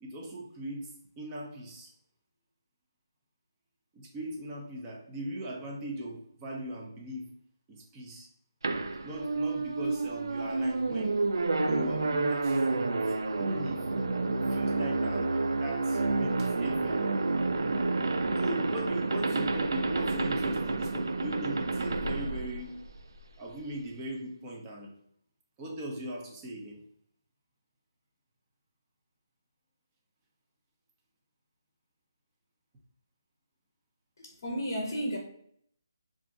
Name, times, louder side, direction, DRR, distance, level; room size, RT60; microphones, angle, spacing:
voice 1, 0.0-0.9 1.2-1.9 3.9-7.3 7.7-8.3 9.0-11.2 11.6-13.9 14.5-17.0 18.4-22.8 23.4-24.9 25.6-26.8, right 1 dB, 15° right, -1 dB, 0.5 m, -39 dB
sound 1, 8.6-23.2, right 3 dB, 75° right, 0.3 m, -29 dB
voice 2, 34.2-35.2, equal, 45° left, 0 dB, 0.6 m, -33 dB
2.5 x 2.2 x 3.9 m, 0.69 s
figure-of-eight pair, 160°, 2 cm